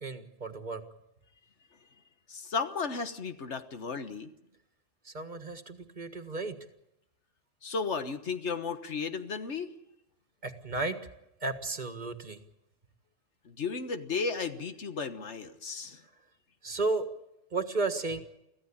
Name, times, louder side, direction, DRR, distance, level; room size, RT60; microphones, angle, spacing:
voice 1, 0.0-0.8 5.1-6.6 10.4-11.0 11.4-12.4 16.6-17.1 17.5-18.2, right 3 dB, 40° right, 9 dB, 1.7 m, -33 dB
voice 2, 2.3-4.3 7.6-9.7 13.5-16.0, left 5 dB, 75° left, 9 dB, 1.6 m, -34 dB
25.0 x 15.0 x 8.7 m, 0.87 s
omnidirectional pair, 1.2 m